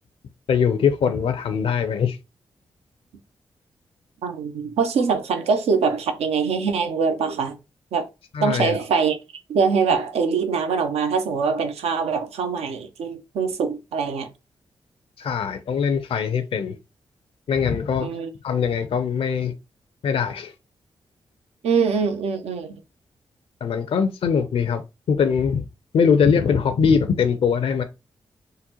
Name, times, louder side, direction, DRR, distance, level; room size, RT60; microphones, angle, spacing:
voice 1, 0.5-2.2 8.3-8.8 15.2-16.8 17.5-18.1 18.4-19.5 20.0-20.5 23.6-24.8 25.1-25.7 25.9-27.8, left 6 dB, 65° left, 0.4 m, -21 dB
voice 2, 4.2-7.6 7.9-8.1 8.4-9.2 9.5-14.3 18.0-18.3 21.6-22.8, right 5 dB, 80° right, 0.6 m, -23 dB
3.8 x 2.1 x 2.8 m
supercardioid pair, 40°, 10 cm